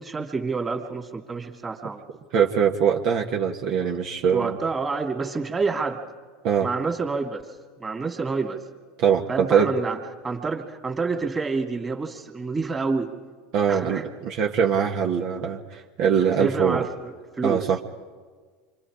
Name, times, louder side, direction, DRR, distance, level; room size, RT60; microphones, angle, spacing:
voice 1, 0.0-2.0 4.3-6.0 6.6-7.5 7.8-8.6 9.3-10.0 10.2-13.1 13.7-14.0 16.4-17.7, right 4 dB, 20° right, 3 dB, 2.5 m, -28 dB
voice 2, 2.3-4.6 6.4-6.7 9.0-9.7 13.5-16.9 17.4-17.8, right 7 dB, 55° right, 2 dB, 1.5 m, -22 dB
28.5 x 25.0 x 5.0 m, 1.5 s
hypercardioid pair, 95°, 0 cm